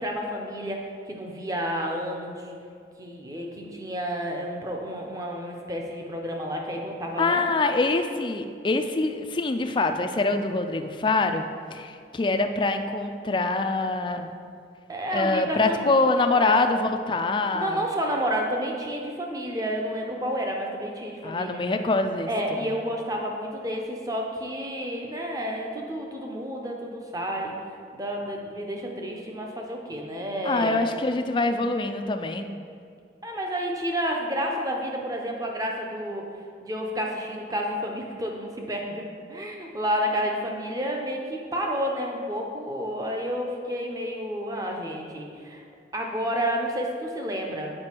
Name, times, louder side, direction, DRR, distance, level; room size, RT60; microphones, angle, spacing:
voice 1, 0.0-2.5 3.0-7.5 14.9-16.0 16.3-16.5 17.5-21.6 22.3-27.5 27.9-30.8 33.2-36.2 36.6-45.6 45.9-47.7, equal, 20° right, 1 dB, 0.7 m, -30 dB
voice 2, 7.2-14.3 15.1-17.9 21.2-22.3 22.6-22.7 30.4-32.5, left 3 dB, 25° left, 6 dB, 0.3 m, -25 dB
7.6 x 5.2 x 4.5 m, 2.3 s
head